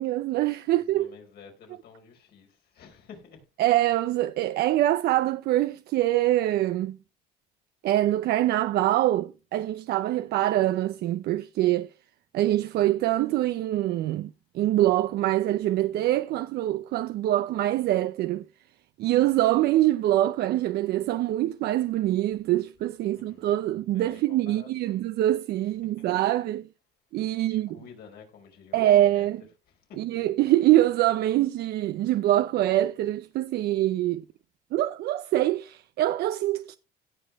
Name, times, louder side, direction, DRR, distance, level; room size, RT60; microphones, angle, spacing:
voice 1, 0.0-1.1 3.6-7.0 7.8-11.9 12.3-14.3 14.5-18.4 19.0-26.7 27.1-27.8 28.7-29.4 30.0-34.2 34.7-36.8, right 14 dB, 70° right, 0.5 m, -24 dB
voice 2, 0.7-3.4 19.0-19.4 23.0-23.5 23.9-25.0 25.6-26.1 27.4-29.3 29.7-30.2, left 6 dB, 70° left, 4.7 m, -51 dB
17.0 x 6.3 x 3.5 m
cardioid pair, 110°, 17 cm